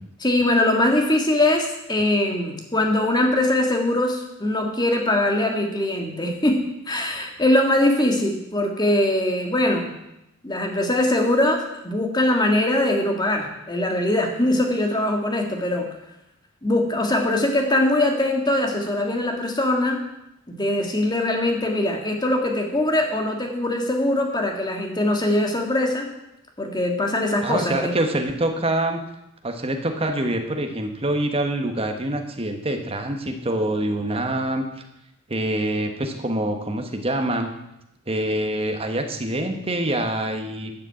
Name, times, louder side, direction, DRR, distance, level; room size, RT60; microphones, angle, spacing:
voice 1, 0.2-9.9 10.4-15.9 16.6-20.0 20.5-26.1 26.6-27.9, left 1 dB, 20° left, 3 dB, 1.7 m, -22 dB
voice 2, 27.4-29.0 29.4-34.6 35.3-37.5 38.1-40.7, right 1 dB, 25° right, 4 dB, 1.3 m, -25 dB
12.0 x 6.6 x 7.7 m, 0.86 s
head